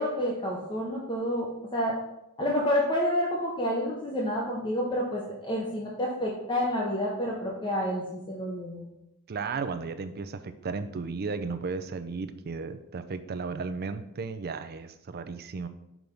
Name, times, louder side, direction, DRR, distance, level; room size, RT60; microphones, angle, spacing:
voice 1, 0.0-2.0 2.4-8.9, equal, 20° left, -3 dB, 0.8 m, -29 dB
voice 2, 9.3-15.7, right 4 dB, 45° right, 10 dB, 0.5 m, -34 dB
6.1 x 3.5 x 5.2 m, 0.84 s
head